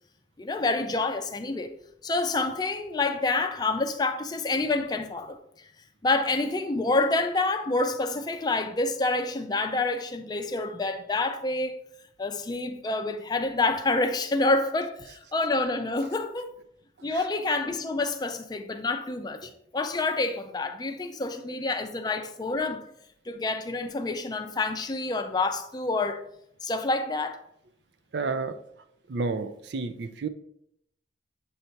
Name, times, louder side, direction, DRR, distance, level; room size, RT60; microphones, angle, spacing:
voice 1, 0.4-1.7 2.0-5.4 6.0-11.8 12.2-16.5 17.0-22.9 23.3-26.2 26.6-27.4, left 3 dB, 20° left, 0.4 m, -28 dB
voice 2, 21.3-21.6 22.1-22.3 28.1-28.6 29.1-30.3, right 4 dB, 65° right, 0.4 m, -32 dB
7.7 x 2.8 x 4.4 m
head